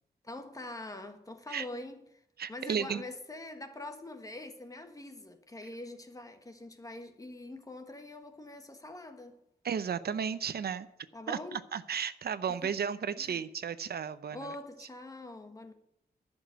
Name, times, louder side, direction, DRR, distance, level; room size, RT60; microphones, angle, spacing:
voice 1, 0.2-2.2 2.5-9.4 11.1-11.6 12.5-12.8 13.2-13.4 14.3-15.7, left 2 dB, 20° left, 1.5 m, -44 dB
voice 2, 2.4-3.0 9.6-10.9 11.3-14.5, right 7 dB, 80° right, 0.7 m, -34 dB
11.5 x 7.2 x 9.2 m
wide cardioid pair, 150°, 16 cm